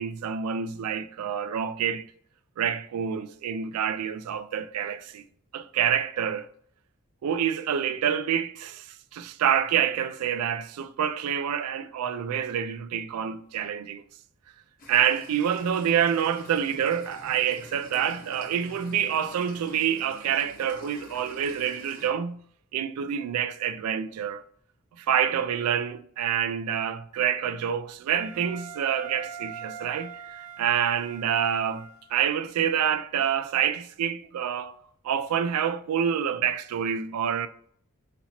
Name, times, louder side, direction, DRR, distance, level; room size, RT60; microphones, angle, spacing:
voice 1, 0.0-2.1 2.6-5.2 5.5-6.5 7.2-14.0 14.9-22.4 22.7-24.4 25.0-34.7 35.0-37.5, right 8 dB, 90° right, 0.3 m, -27 dB
sound 1, 14.8-22.1, left 1 dB, 40° left, 1.0 m, -48 dB
Wind instrument woodwind instrument, 28.1-32.4, right 6 dB, 55° right, 0.8 m, -43 dB
4.1 x 2.8 x 2.8 m
head